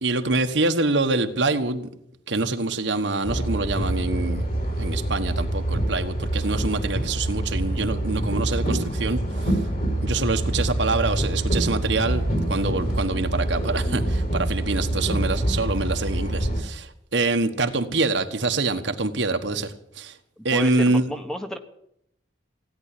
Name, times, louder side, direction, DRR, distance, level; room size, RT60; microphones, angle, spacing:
voice 1, 0.0-1.9 2.3-4.5 4.8-9.6 10.0-20.2 20.4-21.0, right 3 dB, 75° right, 7 dB, 1.4 m, -25 dB
sound 1, 3.2-16.6, right 1 dB, 50° left, 4.1 m, -26 dB
voice 2, 20.5-21.6, equal, 5° left, 7 dB, 1.0 m, -31 dB
17.0 x 10.0 x 8.5 m, 0.76 s
head